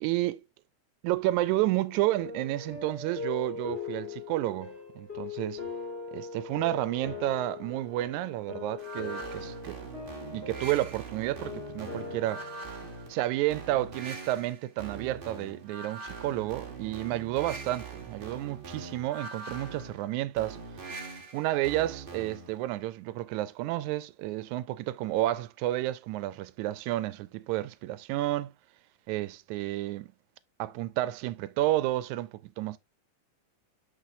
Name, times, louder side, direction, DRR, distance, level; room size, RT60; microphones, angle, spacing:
voice 1, 0.0-0.4 1.0-5.6 6.1-9.8 10.3-12.4 13.1-20.6 21.3-28.5 29.1-30.1 30.6-32.8, right 15 dB, 85° right, 1.9 m, -31 dB
sound 1, 1.5-13.6, left 4 dB, 25° left, 1.8 m, -41 dB
sound 2, 8.8-22.6, right 4 dB, 70° right, 0.5 m, -42 dB
6.3 x 6.1 x 2.6 m
omnidirectional pair, 3.4 m